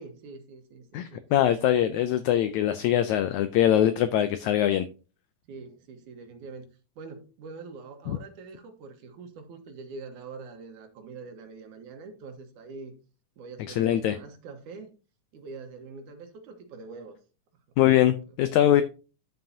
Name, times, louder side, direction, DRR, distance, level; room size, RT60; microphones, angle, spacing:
voice 1, 0.0-1.2 5.5-6.7 7.0-12.9 13.4-14.9 15.3-17.2 18.3-18.4, right 4 dB, 70° right, 6 dB, 2.6 m, -44 dB
voice 2, 0.9-4.9 8.1-8.2 13.7-14.2 17.8-18.8, left 11 dB, 85° left, 12 dB, 1.6 m, -22 dB
10.5 x 7.7 x 2.7 m, 0.33 s
omnidirectional pair, 3.9 m